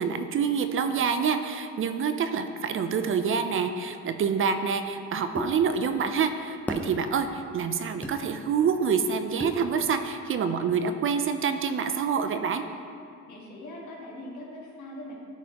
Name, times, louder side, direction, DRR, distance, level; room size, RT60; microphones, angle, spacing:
voice 1, 0.0-12.6, right 6 dB, 45° right, 8 dB, 0.4 m, -27 dB
sound 1, 5.4-5.5 6.7-6.9 8.0-8.2 9.4-9.6, left 1 dB, 5° left, 0.6 m, -32 dB
voice 2, 13.3-15.1, left 1 dB, 75° left, -3 dB, 1.5 m, -41 dB
11.0 x 4.0 x 2.9 m, 2.4 s
cardioid pair, 90°, 30 cm